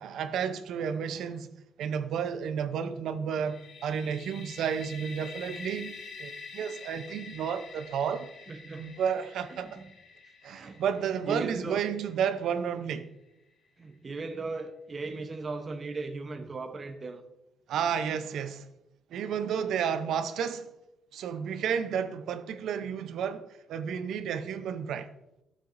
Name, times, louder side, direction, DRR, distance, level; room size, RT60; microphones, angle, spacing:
voice 1, 0.0-1.5 1.8-8.3 8.8-9.8 10.4-13.1 17.7-18.6 19.1-20.7 21.1-25.1, right 7 dB, 75° right, 0.6 m, -32 dB
sound 1, 3.4-13.1, left 4 dB, 60° left, 1.2 m, -47 dB
voice 2, 8.5-8.9 9.5-9.8 10.2-10.8 11.2-11.8 13.8-17.2, right 3 dB, 35° right, 0.8 m, -38 dB
11.5 x 7.5 x 2.6 m
cardioid pair, 90°, 0 cm